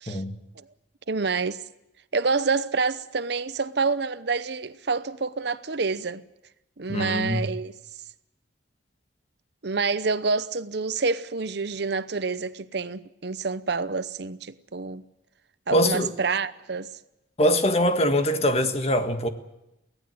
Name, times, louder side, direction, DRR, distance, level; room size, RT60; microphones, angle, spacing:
voice 1, 1.1-1.6 2.1-6.2 6.8-7.7 9.6-15.0 15.7-16.9, right 4 dB, 60° right, 0.8 m, -27 dB
voice 2, 6.9-7.4 15.7-16.1 17.4-19.3, equal, 35° left, 1.6 m, -23 dB
24.0 x 17.0 x 7.9 m
head